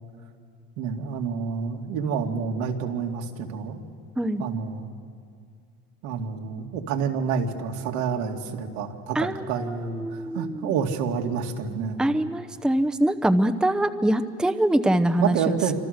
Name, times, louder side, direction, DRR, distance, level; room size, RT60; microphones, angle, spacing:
voice 1, 0.8-3.8 4.4-4.9 6.0-12.0 15.2-15.7, right 6 dB, 75° right, 3 dB, 2.5 m, -28 dB
voice 2, 9.1-10.6 12.0-15.7, right 1 dB, ahead, 10 dB, 0.9 m, -24 dB
27.0 x 26.0 x 6.6 m, 2.2 s
supercardioid pair, 95°, 43 cm